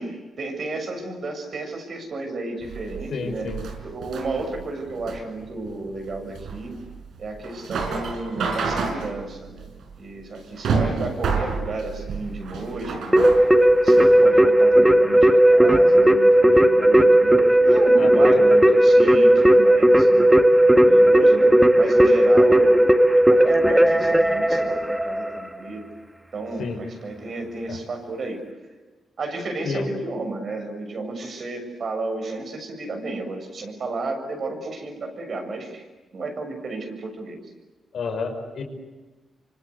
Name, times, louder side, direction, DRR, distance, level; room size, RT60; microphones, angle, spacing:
voice 1, 0.0-3.5 3.8-6.8 7.2-9.7 10.0-13.3 13.8-20.3 20.8-22.8 23.3-25.9 26.3-28.4 29.2-35.8 36.1-37.4, right 2 dB, 55° right, 5 dB, 6.9 m, -32 dB
sound 1, 2.6-14.2, right 4 dB, 80° right, 5.5 m, -29 dB
voice 2, 3.1-3.6 18.0-18.6 26.6-26.8 27.7-27.8 29.6-29.9 37.9-38.6, left 4 dB, 70° left, 5 dB, 5.6 m, -30 dB
Keyboard (musical), 13.1-25.6, right 1 dB, 5° right, 1.5 m, -15 dB
26.0 x 25.5 x 8.3 m, 1.2 s
cardioid pair, 80°, 0 cm